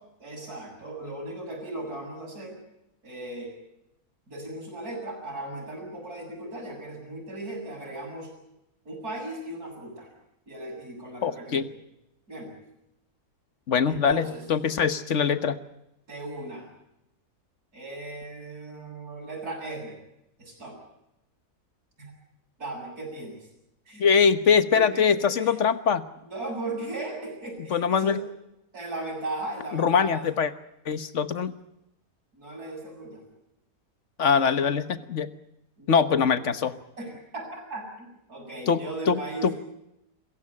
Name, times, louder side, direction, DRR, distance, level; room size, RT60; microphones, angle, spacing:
voice 1, 0.2-2.6 3.0-3.6 4.3-8.3 8.8-10.1 10.5-11.6 12.3-12.5 13.9-14.4 16.1-16.7 17.7-20.0 20.4-20.8 22.0-22.1 22.6-23.4 23.9-24.0 24.7-25.6 26.3-28.2 28.7-30.2 32.3-33.2 35.8-35.9 36.3-36.4 37.0-39.5, right 2 dB, 75° right, 2 dB, 8.0 m, -37 dB
voice 2, 11.2-11.7 13.7-15.6 24.0-26.1 27.7-28.2 29.7-30.5 30.8-31.5 34.2-35.3 35.9-36.8 38.7-39.5, left 6 dB, 50° left, 12 dB, 1.5 m, -23 dB
27.0 x 15.5 x 9.8 m, 0.87 s
omnidirectional pair, 1.6 m